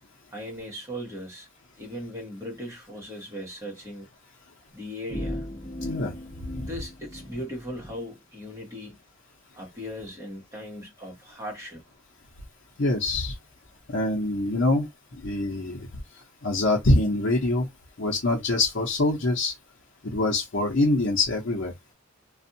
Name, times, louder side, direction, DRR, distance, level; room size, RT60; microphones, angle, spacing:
voice 1, 0.3-1.5 1.8-4.1 4.7-5.5 6.6-9.0 9.5-11.8, equal, 15° right, 1.3 m, -38 dB
sound 1, 5.1-7.9, left 1 dB, 15° left, 0.8 m, -37 dB
voice 2, 5.8-6.1 12.8-13.3 13.9-14.9 15.2-15.9 16.4-17.7 18.0-19.5 20.0-21.7, left 2 dB, 65° left, 0.8 m, -24 dB
2.6 x 2.3 x 2.6 m
head